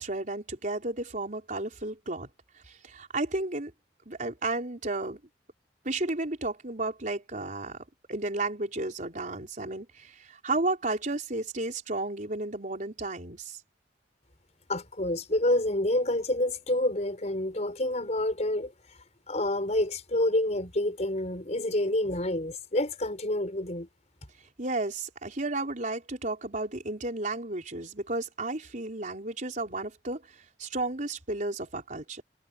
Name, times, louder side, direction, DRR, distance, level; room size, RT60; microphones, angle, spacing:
voice 1, 0.0-2.3 2.7-3.7 4.1-5.2 5.8-7.8 8.1-13.6 24.6-32.2, right 2 dB, 45° right, 4.6 m, -33 dB
voice 2, 14.7-18.7 19.3-23.9, left 1 dB, 40° left, 5.1 m, -28 dB
head